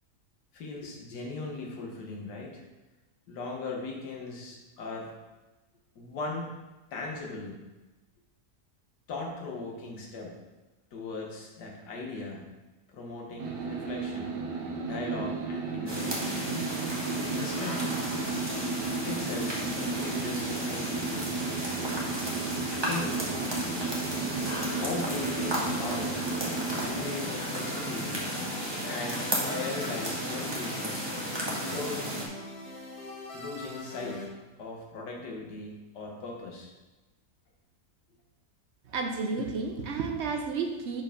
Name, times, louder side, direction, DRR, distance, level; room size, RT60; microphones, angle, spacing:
voice 1, 0.5-2.6 3.3-5.1 6.0-6.5 6.9-7.6 9.1-10.4 10.9-12.5 12.9-14.5 14.8-16.4 17.1-18.1 19.1-21.3 22.8-23.4 24.8-26.3 26.8-28.3 28.8-31.1 31.6-32.0 33.3-34.3 34.6-36.7, left 3 dB, 80° left, -1 dB, 1.8 m, -38 dB
sound 1, 13.4-27.0, right 4 dB, 85° right, 1.5 m, -34 dB
sound 2, 15.9-32.3, right 1 dB, 15° right, 1.3 m, -33 dB
sound 3, 24.0-34.2, left 2 dB, 60° left, 1.8 m, -42 dB
voice 2, 38.9-41.0, right 4 dB, 60° right, 4 dB, 0.7 m, -31 dB
5.8 x 4.8 x 5.1 m, 1.1 s
omnidirectional pair, 1.8 m